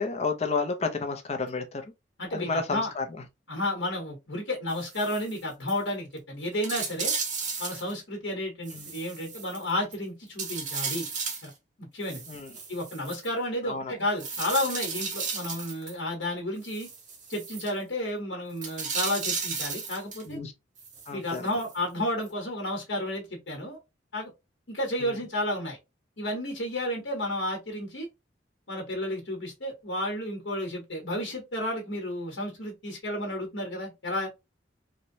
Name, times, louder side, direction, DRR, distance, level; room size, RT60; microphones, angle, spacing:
voice 1, 0.0-1.9 2.3-3.1 8.7-8.9 12.3-12.6 13.6-13.9 20.3-20.5 21.1-21.5 25.0-25.2, left 4 dB, 35° left, 0.5 m, -31 dB
voice 2, 2.2-2.9 3.5-7.1 7.6-11.1 11.4-11.5 11.8-12.2 12.7-16.9 17.3-20.4 21.1-23.8 24.1-24.3 24.7-25.8 26.2-28.1 28.7-34.3, left 1 dB, 80° left, 1.1 m, -32 dB
sound 1, 4.7-5.4 5.7-5.8 6.2-6.3 6.6-8.0 8.7-10.0 10.4-11.5 12.0-13.3 14.2-15.9 16.6-17.7 18.6-20.3 20.8-21.8 22.2-22.3, right 5 dB, 40° right, 0.7 m, -34 dB
3.0 x 2.2 x 2.6 m
head